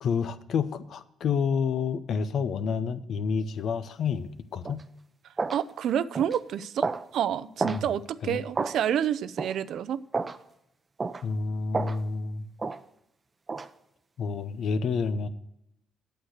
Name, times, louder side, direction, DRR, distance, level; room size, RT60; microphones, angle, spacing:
voice 1, 0.0-4.8 7.6-7.9 8.2-8.4 11.2-12.5 14.2-15.3, left 5 dB, 65° left, 0.8 m, -29 dB
sound 1, 4.6-4.8 5.4-5.6 6.1-6.4 6.8-7.0 7.6-7.8 8.5-8.8 9.4-9.6 10.1-10.4 11.0-11.2 11.7-12.0 12.6-12.8 13.5-13.7, right 4 dB, 30° right, 0.7 m, -30 dB
voice 2, 5.5-6.8 7.1-10.0, right 9 dB, 70° right, 0.5 m, -28 dB
8.8 x 8.0 x 6.5 m
cardioid pair, 90°, 0 cm